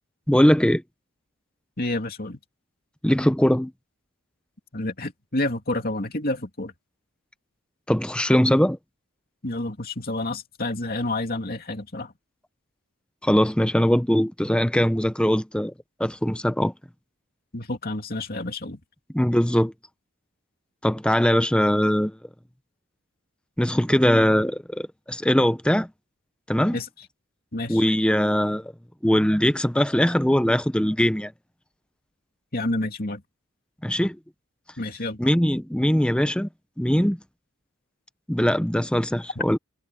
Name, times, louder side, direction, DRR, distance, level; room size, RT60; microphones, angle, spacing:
voice 1, 0.3-0.8 3.0-3.7 7.9-8.8 13.2-15.7 16.0-16.7 19.1-19.7 20.8-22.2 23.6-25.9 26.5-26.8 27.7-28.7 29.0-31.3 33.8-34.2 35.2-36.5 36.8-37.2 38.3-39.6, equal, 5° left, 0.8 m, -21 dB
voice 2, 1.8-2.4 4.7-6.7 9.4-12.1 17.5-18.8 26.7-26.9 27.5-27.8 32.5-33.2 34.8-35.2, left 2 dB, 45° left, 2.8 m, -29 dB
head